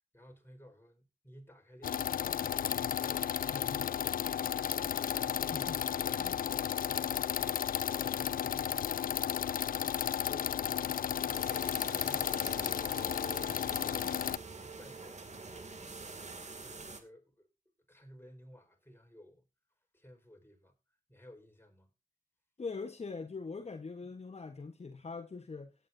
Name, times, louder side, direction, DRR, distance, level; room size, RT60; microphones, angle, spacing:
voice 1, 0.1-2.7 11.0-15.7 16.6-17.5 17.9-19.4 19.9-20.7 21.1-21.9, equal, 15° left, 4.7 m, -56 dB
sound 1, 1.8-14.4, left 9 dB, 80° left, 0.5 m, -33 dB
voice 2, 5.3-5.8 6.2-6.4 22.6-25.7, left 4 dB, 50° left, 1.2 m, -42 dB
sound 2, 11.3-17.0, right 4 dB, 55° right, 2.3 m, -46 dB
17.0 x 9.4 x 2.7 m
cardioid pair, 50°, 15 cm